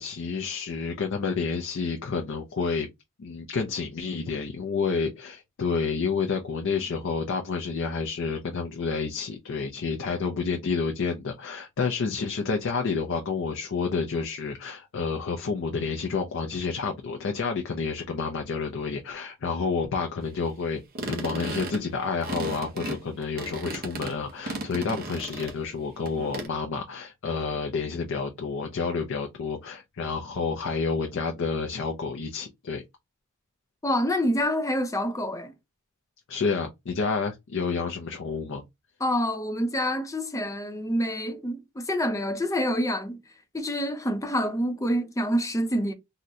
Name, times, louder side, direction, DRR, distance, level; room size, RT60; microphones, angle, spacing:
voice 1, 0.0-2.9 3.2-20.8 21.1-32.8 36.3-38.6, left 5 dB, 65° left, 0.5 m, -29 dB
sound 1, 20.9-25.7 26.1-26.5, right 2 dB, 45° right, 0.7 m, -35 dB
voice 2, 33.8-35.5 39.0-43.2 43.5-45.9, equal, 15° left, 0.5 m, -27 dB
3.7 x 2.1 x 2.7 m
head